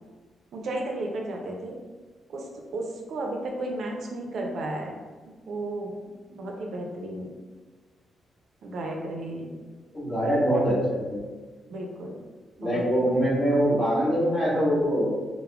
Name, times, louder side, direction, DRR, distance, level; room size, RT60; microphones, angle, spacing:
voice 1, 0.5-1.8 2.3-5.0 5.5-5.9 6.3-7.3 8.6-9.5 11.7-12.2 12.6-13.2, right 1 dB, 65° right, 1 dB, 0.4 m, -33 dB
voice 2, 9.9-11.2 12.6-15.1, equal, 35° left, -9 dB, 1.4 m, -23 dB
3.4 x 2.0 x 2.2 m, 1.4 s
cardioid pair, 135°, 0 cm